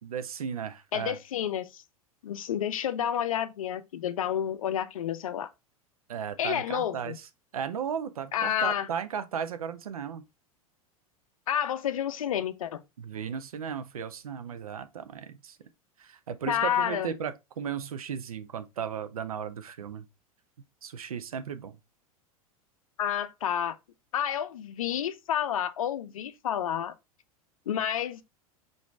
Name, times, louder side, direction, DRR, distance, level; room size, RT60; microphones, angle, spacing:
voice 1, 0.0-1.2 6.1-7.1 7.5-10.2 13.0-15.6 16.0-20.1 20.8-21.8, right 8 dB, 70° right, 0.6 m, -35 dB
voice 2, 0.9-1.8 2.2-5.5 6.4-7.2 8.3-8.9 11.5-12.8 16.5-17.1 23.0-23.8 24.1-26.9 27.7-28.2, left 9 dB, 65° left, 0.5 m, -30 dB
4.9 x 2.6 x 3.1 m
figure-of-eight pair, 85°, 19 cm